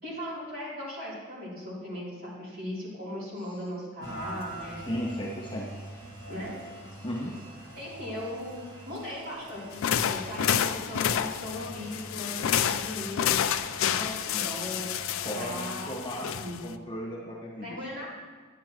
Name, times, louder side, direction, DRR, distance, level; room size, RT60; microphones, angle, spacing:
voice 1, 0.0-4.8 6.3-6.6 7.8-14.9 15.3-16.0 16.4-16.6 17.6-18.1, left 1 dB, 45° right, -7 dB, 3.3 m, -38 dB
Rain, 4.0-16.0, right 1 dB, 20° right, 1.4 m, -45 dB
voice 2, 4.8-5.7 7.0-7.3 15.2-16.3 16.6-17.8, equal, 25° left, -4 dB, 1.3 m, -35 dB
sound 1, 9.7-16.7, left 9 dB, 70° left, 0.4 m, -29 dB
10.5 x 10.5 x 3.0 m, 1.4 s
head